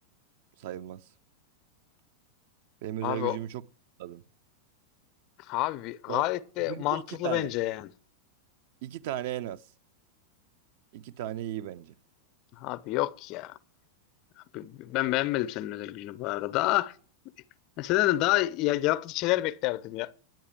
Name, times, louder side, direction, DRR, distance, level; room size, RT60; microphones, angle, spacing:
voice 1, 0.6-1.0 2.8-3.6 4.0-4.2 6.1-6.3 6.7-7.5 8.8-9.6 10.9-12.0, right 12 dB, 50° right, 0.6 m, -36 dB
voice 2, 3.0-3.4 5.5-7.9 12.6-13.5 14.5-16.9 17.8-20.1, left 17 dB, 40° left, 0.6 m, -28 dB
10.5 x 8.7 x 7.3 m
figure-of-eight pair, 90°, 0 cm